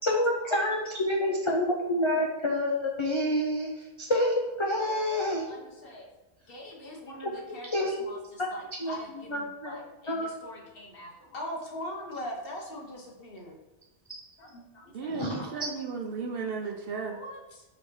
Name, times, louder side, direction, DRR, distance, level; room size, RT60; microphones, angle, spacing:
voice 1, 0.0-5.5 7.7-8.1 8.8-9.0 9.3-9.8 10.1-10.3 15.1-15.5, left 1 dB, 35° left, -1 dB, 0.5 m, -28 dB
voice 2, 5.2-6.1 6.5-7.7 8.0-13.6 14.4-15.6 17.1-17.6, left 1 dB, 55° left, 0 dB, 1.2 m, -42 dB
voice 3, 14.9-17.2, right 4 dB, 60° right, 2 dB, 0.9 m, -34 dB
5.8 x 3.8 x 4.6 m, 1.1 s
omnidirectional pair, 1.2 m